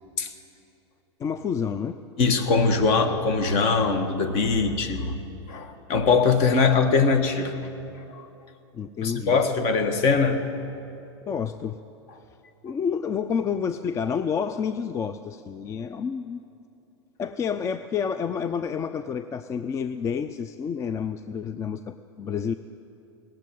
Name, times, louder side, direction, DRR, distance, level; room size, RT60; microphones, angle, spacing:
voice 1, 1.2-2.0 4.6-4.7 8.7-9.4 11.3-11.8 12.6-16.4 17.2-22.5, left 6 dB, 20° left, 11 dB, 0.4 m, -29 dB
voice 2, 2.2-5.1 5.5-7.7 7.9-8.3 9.0-10.5, left 4 dB, 45° left, 7 dB, 1.4 m, -22 dB
18.5 x 7.6 x 9.3 m, 2.8 s
hypercardioid pair, 100°, 14 cm